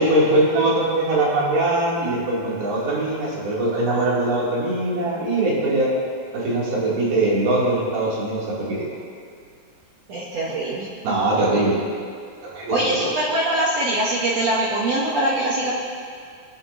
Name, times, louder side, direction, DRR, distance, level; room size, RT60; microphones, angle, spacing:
voice 1, 0.0-5.9 6.3-8.9 11.0-11.8 12.4-13.0, right 2 dB, 90° right, -7 dB, 4.5 m, -21 dB
voice 2, 10.1-10.9 12.7-15.7, right 1 dB, 65° right, -5 dB, 1.7 m, -23 dB
21.0 x 8.8 x 2.6 m, 2.2 s
omnidirectional pair, 4.2 m